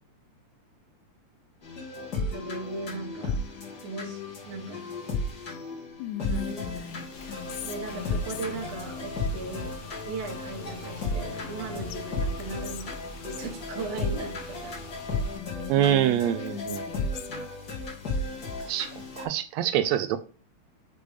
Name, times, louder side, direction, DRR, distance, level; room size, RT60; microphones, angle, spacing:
sound 1, 1.6-19.2, left 2 dB, 35° left, 2.0 m, -34 dB
voice 1, 2.3-3.4 3.8-4.9 6.3-7.0 7.6-13.0 13.2-14.7, right 3 dB, 65° right, 0 dB, 2.4 m, -38 dB
Whispering, 6.0-8.8 10.9-11.6 11.9-12.0 12.4-13.5 15.3-17.5, left 12 dB, 90° left, 2.0 m, -39 dB
Car / Engine, 7.1-15.4, left 3 dB, 50° left, 2.0 m, -44 dB
voice 2, 15.7-16.8 18.6-18.9 19.2-20.2, right 11 dB, 80° right, 11 dB, 1.6 m, -25 dB
6.6 x 3.4 x 5.0 m, 0.36 s
omnidirectional pair, 3.4 m